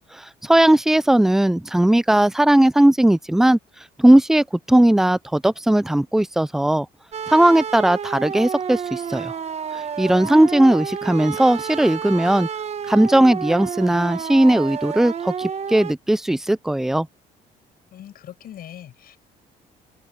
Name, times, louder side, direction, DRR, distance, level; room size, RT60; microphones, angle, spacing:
voice 1, 0.2-3.6 4.0-6.9 7.3-9.3 10.0-12.5 12.9-17.1, right 1 dB, ahead, 0.4 m, -17 dB
sound 1, 7.1-15.9, right 7 dB, 40° right, 1.1 m, -30 dB
voice 2, 17.9-19.2, left 11 dB, 60° left, 6.5 m, -41 dB
open air
cardioid pair, 110°, 17 cm